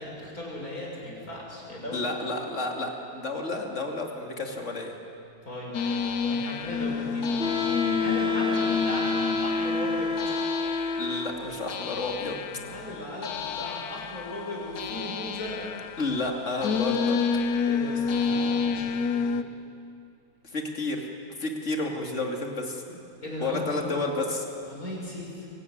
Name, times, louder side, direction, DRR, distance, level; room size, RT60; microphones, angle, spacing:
voice 1, 0.0-2.1 5.4-10.2 12.5-15.7 17.6-19.3 23.2-23.9 24.6-25.5, left 1 dB, 70° left, -3 dB, 6.7 m, -37 dB
voice 2, 1.9-4.9 11.0-12.4 16.0-17.2 20.5-21.1 21.4-23.0 23.4-24.4, left 2 dB, 50° left, 1 dB, 2.9 m, -31 dB
sound 1, 5.7-19.4, left 6 dB, 85° left, 1.3 m, -30 dB
Wind instrument woodwind instrument, 7.4-11.5, left 3 dB, 5° right, 1.4 m, -28 dB
24.0 x 18.0 x 9.5 m, 2.6 s
omnidirectional pair, 1.6 m